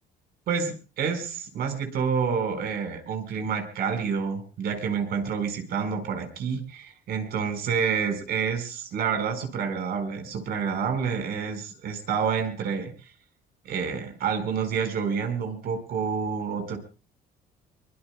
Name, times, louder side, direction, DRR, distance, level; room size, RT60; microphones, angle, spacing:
voice 1, 0.5-12.9 13.6-16.8, right 6 dB, 70° right, 5 dB, 4.6 m, -28 dB
24.0 x 22.0 x 2.2 m, 0.33 s
cardioid pair, 110°, 17 cm